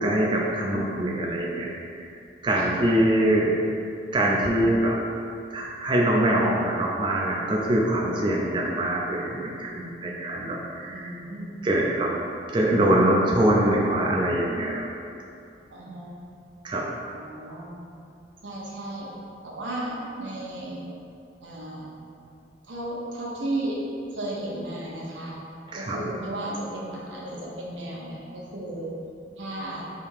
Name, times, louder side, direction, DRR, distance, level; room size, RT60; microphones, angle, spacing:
voice 1, 0.0-1.7 2.4-3.6 4.1-5.0 5.5-11.1 11.6-12.1 12.5-14.9 16.6-16.9 25.7-26.0, right 1 dB, 25° right, -3 dB, 0.3 m, -23 dB
voice 2, 8.3-8.7 10.9-11.5 15.7-16.1 17.1-17.8 18.4-19.1 19.4-20.8 21.4-21.9 22.6-23.8 24.1-25.4 25.8-28.9 29.4-29.8, right 1 dB, 90° right, -4 dB, 0.9 m, -34 dB
3.4 x 2.8 x 4.6 m, 2.5 s
head